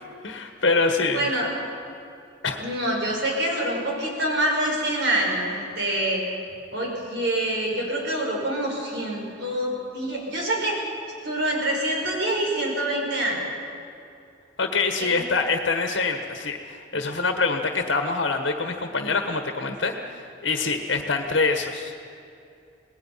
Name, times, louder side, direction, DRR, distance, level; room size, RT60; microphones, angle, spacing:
voice 1, 0.2-1.2 2.4-2.6 14.6-22.0, left 4 dB, 70° left, 5 dB, 1.4 m, -25 dB
voice 2, 1.1-1.5 2.6-6.2 6.7-10.8 11.2-13.4 15.0-15.2, right 1 dB, 65° right, -1 dB, 5.8 m, -26 dB
27.5 x 19.5 x 5.7 m, 2.6 s
head